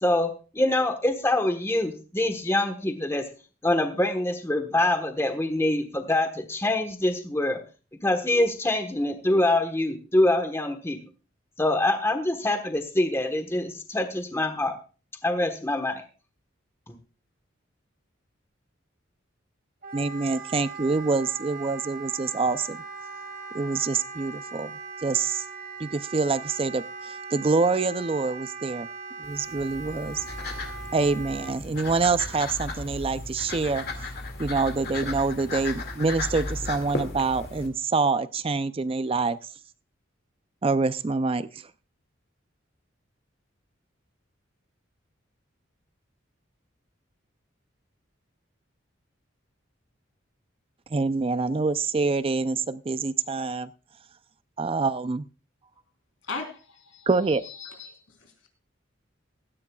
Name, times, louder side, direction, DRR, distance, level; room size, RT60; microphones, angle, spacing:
voice 1, 0.0-3.2 3.6-7.6 8.0-11.0 11.6-14.8 15.2-16.0 16.9-17.0, left 1 dB, 15° left, 6 dB, 1.2 m, -25 dB
Wind instrument woodwind instrument, 19.8-31.5, right 4 dB, 45° right, 2.7 m, -40 dB
voice 2, 19.9-22.8 23.5-25.4 25.8-28.9 29.2-30.2 30.9-33.8 34.4-39.4 40.6-41.7 50.9-53.7 54.6-55.3 57.1-57.4, right 4 dB, 30° right, 14 dB, 0.4 m, -26 dB
sound 1, 29.2-37.7, left 2 dB, 55° left, 2.2 m, -35 dB
voice 3, 56.2-58.5, left 4 dB, 85° left, 4 dB, 3.5 m, -39 dB
16.5 x 13.5 x 2.3 m, 0.35 s
head